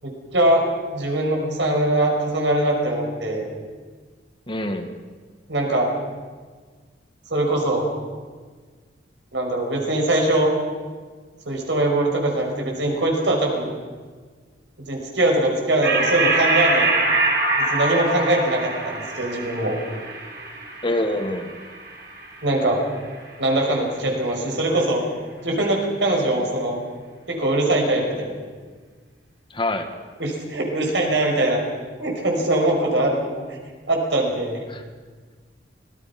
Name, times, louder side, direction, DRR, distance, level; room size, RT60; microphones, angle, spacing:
voice 1, 0.0-3.5 5.5-5.9 7.3-7.9 9.3-10.5 11.5-13.7 14.9-16.9 17.6-19.8 22.4-22.8 23.4-25.0 25.4-26.8 27.3-28.4 30.2-31.6 32.0-33.2 33.9-34.6, right 1 dB, 85° right, 0 dB, 5.5 m, -22 dB
voice 2, 4.5-4.9 20.8-21.6 29.5-29.9 34.7-34.8, left 1 dB, 30° left, 6 dB, 1.7 m, -25 dB
sound 1, 15.8-22.7, right 2 dB, 65° right, 4.8 m, -24 dB
25.5 x 18.0 x 5.9 m, 1.5 s
head